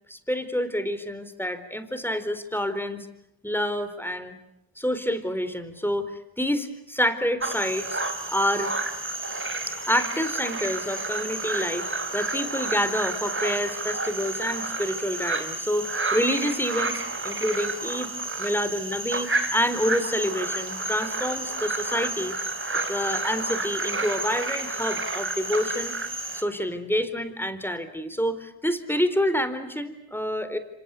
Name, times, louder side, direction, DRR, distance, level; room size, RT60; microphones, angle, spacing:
voice 1, 0.1-3.1 3.4-4.3 4.8-8.0 8.3-8.7 9.6-11.9 12.1-18.1 18.4-22.3 22.9-26.0 26.3-30.6, equal, 5° left, 11 dB, 4.0 m, -28 dB
sound 1, 7.4-26.4, right 2 dB, 25° right, 4.0 m, -30 dB
27.5 x 26.0 x 8.4 m, 0.81 s
supercardioid pair, 50°, 49 cm